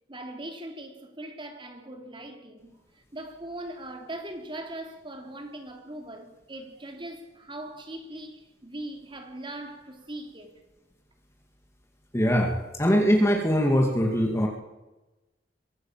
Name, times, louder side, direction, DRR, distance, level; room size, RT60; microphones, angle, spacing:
voice 1, 0.1-10.5, right 1 dB, 30° right, 3.1 m, -40 dB
voice 2, 12.1-14.5, equal, 15° left, 2.4 m, -22 dB
23.0 x 16.5 x 7.5 m
head